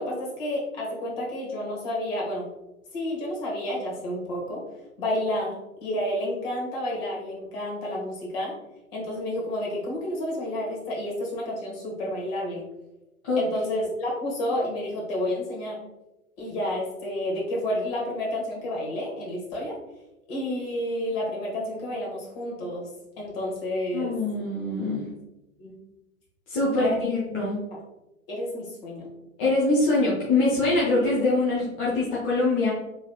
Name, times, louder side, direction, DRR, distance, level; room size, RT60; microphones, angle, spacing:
voice 1, 0.0-2.5 2.9-4.6 5.0-8.5 8.9-12.6 13.4-15.8 16.4-19.8 20.3-22.9 23.2-24.2 25.6-25.7 26.8-27.0 27.7-27.8 28.3-29.1 30.9-31.1, left 1 dB, 40° left, -3 dB, 1.2 m, -30 dB
voice 2, 23.9-25.0 26.5-27.6 29.4-32.7, left 2 dB, 25° left, -6 dB, 0.6 m, -23 dB
3.1 x 2.8 x 2.3 m, 0.97 s
figure-of-eight pair, 110°, 43 cm